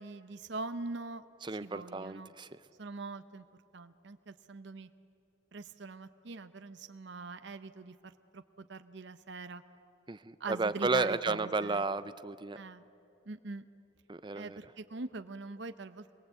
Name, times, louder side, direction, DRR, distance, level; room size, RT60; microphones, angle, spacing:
voice 1, 0.0-1.2 1.6-2.3 2.8-3.4 3.7-4.9 5.5-8.4 8.7-9.6 10.4-11.8 12.5-12.8 13.3-13.6 14.3-16.2, right 3 dB, 60° right, 10 dB, 0.7 m, -43 dB
voice 2, 1.4-2.6 10.1-12.6 14.1-14.6, right 3 dB, 25° right, 13 dB, 0.6 m, -33 dB
26.0 x 22.5 x 8.2 m, 2.8 s
head